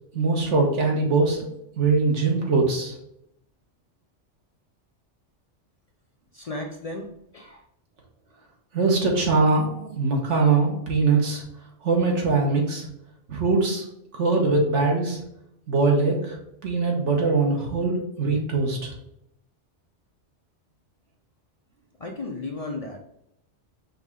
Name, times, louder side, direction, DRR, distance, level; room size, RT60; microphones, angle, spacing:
voice 1, 0.1-1.5 1.8-2.9 8.7-11.4 11.8-12.9 13.3-13.8 14.2-15.2 15.7-16.4 16.6-18.9, right 3 dB, 85° right, 0 dB, 1.5 m, -22 dB
voice 2, 6.3-7.6 22.0-23.0, left 2 dB, 50° left, 1 dB, 0.4 m, -34 dB
5.5 x 2.7 x 3.6 m, 0.79 s
omnidirectional pair, 1.2 m